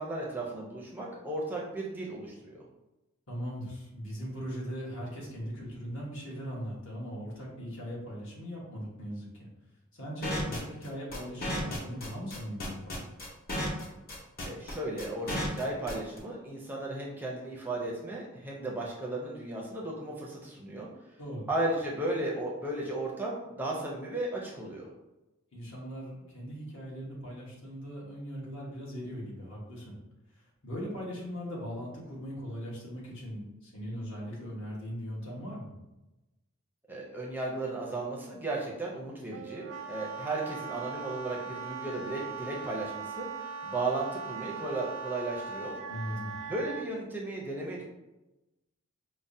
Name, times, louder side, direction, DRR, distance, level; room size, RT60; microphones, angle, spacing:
voice 1, 0.0-2.6 14.5-20.9 21.5-24.9 36.9-43.3 43.6-45.8 46.5-47.8, right 2 dB, 10° right, -3 dB, 0.5 m, -35 dB
voice 2, 3.3-9.5 9.9-13.0 21.2-21.5 25.5-29.9 30.6-35.7 45.9-46.3, equal, 65° left, -5 dB, 1.2 m, -39 dB
sound 1, 10.2-16.2, equal, 45° left, 0.7 m, -34 dB
Wind instrument woodwind instrument, 39.3-46.9, right 5 dB, 85° right, 0.4 m, -40 dB
5.2 x 2.1 x 2.6 m, 0.99 s
head